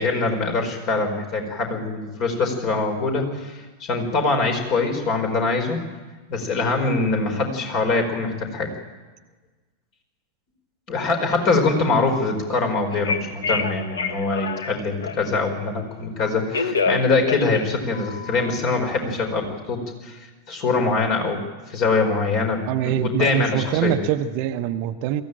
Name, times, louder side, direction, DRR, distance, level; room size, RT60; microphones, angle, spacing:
voice 1, 0.0-5.8 6.3-8.7 10.9-24.0, left 3 dB, 40° left, 5 dB, 4.6 m, -23 dB
Telephone, 12.9-15.4 16.2-18.6, left 4 dB, 65° left, 1.4 m, -27 dB
voice 2, 22.7-25.2, right 11 dB, 45° right, 10 dB, 0.9 m, -24 dB
22.5 x 15.0 x 9.0 m, 1.3 s
figure-of-eight pair, 90°, 0 cm